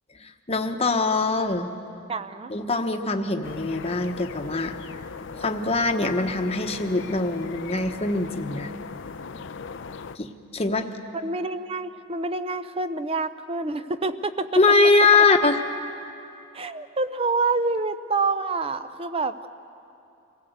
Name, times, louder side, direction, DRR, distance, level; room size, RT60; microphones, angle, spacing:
voice 1, 0.2-1.7 2.5-4.8 5.4-8.7 10.2-10.9 14.5-15.6, left 3 dB, 30° left, 5 dB, 1.1 m, -22 dB
voice 2, 2.1-2.5 11.1-14.6 16.5-19.5, right 3 dB, 30° right, 11 dB, 0.7 m, -27 dB
sound 1, 3.4-10.2, left 5 dB, 60° left, 0.5 m, -38 dB
25.5 x 17.0 x 8.1 m, 2.7 s
head